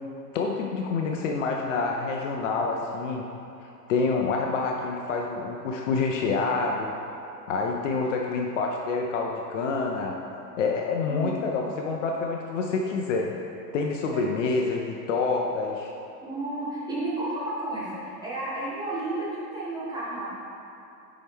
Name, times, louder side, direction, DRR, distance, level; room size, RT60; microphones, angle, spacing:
voice 1, 0.3-3.2 3.9-6.9 7.5-10.1 10.6-13.3 13.7-15.9, left 4 dB, 50° left, 1 dB, 0.5 m, -27 dB
voice 2, 11.1-11.4 14.1-14.2 16.2-20.3, right 2 dB, 10° right, -9 dB, 1.0 m, -32 dB
7.0 x 4.7 x 3.5 m, 2.7 s
hypercardioid pair, 150°, 49 cm